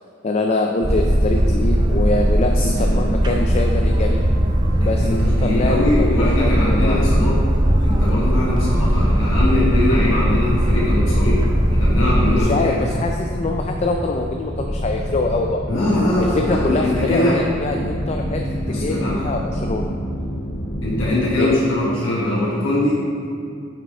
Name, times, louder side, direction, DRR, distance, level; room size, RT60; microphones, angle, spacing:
voice 1, 0.2-4.2 4.8-7.0 12.3-15.6 16.2-18.5 18.8-19.9 21.4-21.5, left 2 dB, 35° left, 2 dB, 0.4 m, -24 dB
Boat Water vehicle, 0.8-12.4, equal, 20° right, 0.5 m, -18 dB
voice 2, 2.5-3.0 4.8-7.4 7.8-11.4 11.7-12.8 15.7-17.4 18.6-19.3 20.8-23.0, left 1 dB, 90° left, -7 dB, 1.4 m, -22 dB
sound 1, 5.3-21.2, equal, 10° left, 0.8 m, -28 dB
6.4 x 4.9 x 4.8 m, 2.4 s
head